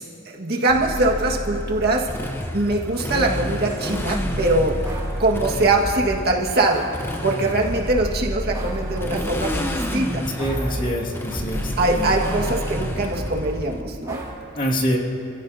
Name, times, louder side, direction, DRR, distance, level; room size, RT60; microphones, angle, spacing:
voice 1, 0.0-2.1 2.5-4.8 5.2-6.9 7.2-10.2 11.8-14.2, right 2 dB, 55° right, -1 dB, 1.7 m, -22 dB
sound 1, 0.7-6.1 6.7-9.9 10.4-13.4 14.1-14.3, equal, 20° right, 2.5 m, -31 dB
Motorcycle, 1.0-13.8, left 1 dB, 10° left, 0.9 m, -31 dB
voice 2, 10.4-12.1 14.6-15.0, equal, 45° left, -2 dB, 2.2 m, -25 dB
28.5 x 16.5 x 2.8 m, 2.8 s
head